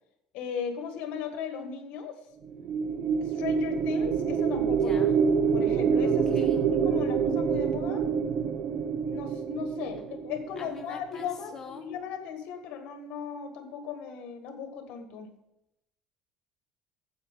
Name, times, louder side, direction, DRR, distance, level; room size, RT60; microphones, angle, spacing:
voice 1, 0.3-2.2 3.2-5.0 5.5-8.1 9.1-15.3, left 7 dB, 65° left, 6 dB, 1.6 m, -37 dB
sound 1, 2.4-10.9, right 6 dB, 50° right, 0.6 m, -26 dB
voice 2, 4.8-5.2 6.0-6.6 10.6-11.9, left 5 dB, 20° left, 3 dB, 1.1 m, -45 dB
9.2 x 8.1 x 5.1 m, 0.86 s
cardioid pair, 130°, 2 cm